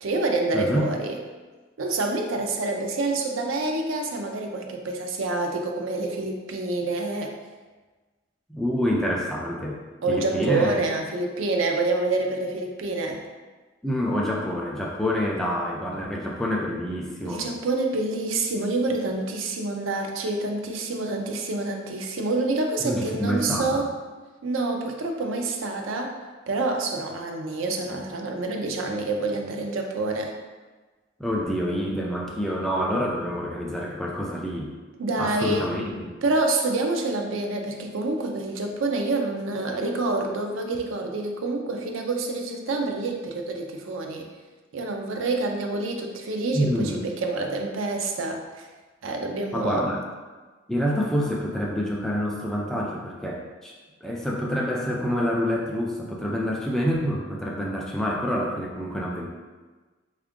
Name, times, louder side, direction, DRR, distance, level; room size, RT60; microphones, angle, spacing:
voice 1, 0.0-1.2 1.8-7.3 10.0-13.2 17.2-23.9 24.4-26.2 26.5-30.3 35.0-35.7 36.2-44.3 44.7-48.7 49.0-49.9, right 2 dB, 70° right, 3 dB, 0.5 m, -27 dB
voice 2, 0.5-0.9 8.5-9.8 10.1-10.8 13.8-17.5 22.8-23.9 31.2-34.7 35.2-36.2 46.5-47.0 49.5-50.0 50.7-53.7 54.0-59.3, equal, ahead, -2 dB, 0.3 m, -27 dB
3.6 x 2.4 x 3.5 m, 1.3 s
head